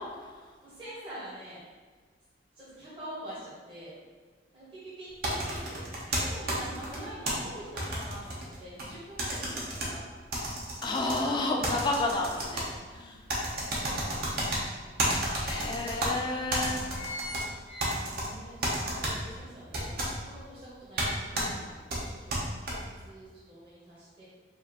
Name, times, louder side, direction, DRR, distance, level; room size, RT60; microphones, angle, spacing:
voice 1, 0.3-1.6 2.5-3.9 4.5-5.8 6.2-10.0 10.8-11.4 13.6-14.6 16.6-17.3 18.0-22.3 22.8-24.2, right 1 dB, 30° right, -10 dB, 1.0 m, -45 dB
sound 1, 5.2-7.3 7.8-8.9 9.2-9.9 10.3-11.2 11.6-12.7 13.3-14.6 15.0-16.1 16.5-17.4 17.8-18.3 18.6-19.1 19.7-20.1 21.0-21.1 21.3-21.5 21.9-22.7, right 1 dB, 55° right, 0.8 m, -31 dB
voice 2, 10.8-12.7 12.9-13.2 14.5-14.6 15.4-16.8, left 2 dB, 25° left, 0 dB, 0.4 m, -30 dB
sound 2, 13.3-14.5 15.1-15.2 15.4-15.5 16.2-16.4 16.7-18.5 18.9-19.0, equal, 90° left, 0.7 m, -40 dB
4.8 x 2.5 x 2.9 m, 1.5 s
head